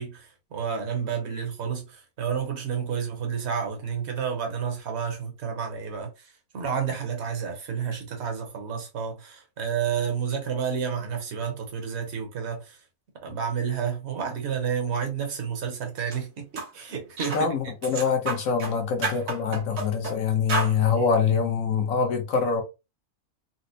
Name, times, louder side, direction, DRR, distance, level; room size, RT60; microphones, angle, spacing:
voice 1, 0.0-6.3 6.5-12.8 13.2-17.5 21.0-21.1, right 7 dB, 50° right, 1.1 m, -30 dB
sound 1, 16.0-16.2 16.6-16.7 17.2-17.4 17.8-18.7 19.0-20.2 20.5-20.7, right 3 dB, 80° right, 1.6 m, -30 dB
voice 2, 17.3-22.6, left 6 dB, 65° left, 1.1 m, -24 dB
4.1 x 2.0 x 2.6 m
omnidirectional pair, 1.6 m